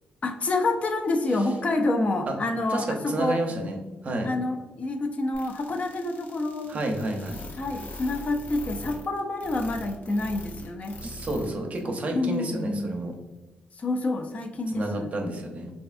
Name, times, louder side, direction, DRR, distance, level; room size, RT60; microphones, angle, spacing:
voice 1, 0.2-3.4 4.2-6.7 7.6-11.0 12.1-13.0 13.8-15.1, left 2 dB, 40° left, 5 dB, 0.3 m, -28 dB
voice 2, 2.7-3.8 4.0-4.3 6.7-7.4 11.0-13.1 14.7-15.7, right 1 dB, 45° right, 2 dB, 0.6 m, -30 dB
sound 1, 5.3-11.5 11.7-11.8 12.3-12.4, left 1 dB, 55° left, 0.7 m, -40 dB
3.2 x 2.6 x 2.4 m, 1.2 s
cardioid pair, 110°, 4 cm